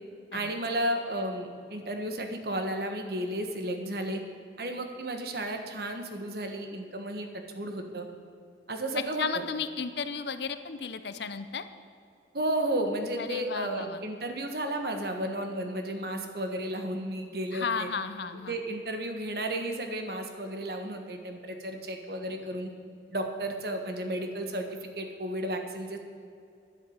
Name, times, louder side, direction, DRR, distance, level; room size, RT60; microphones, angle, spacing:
voice 1, 0.3-4.2 4.6-7.3 7.5-8.0 8.7-9.4 12.3-17.9 18.5-22.7 23.1-26.0, right 1 dB, 55° right, 5 dB, 1.4 m, -33 dB
voice 2, 9.2-11.6 13.2-14.0 17.5-18.6, left 5 dB, 70° left, 11 dB, 0.7 m, -34 dB
10.5 x 8.1 x 8.7 m, 2.5 s
head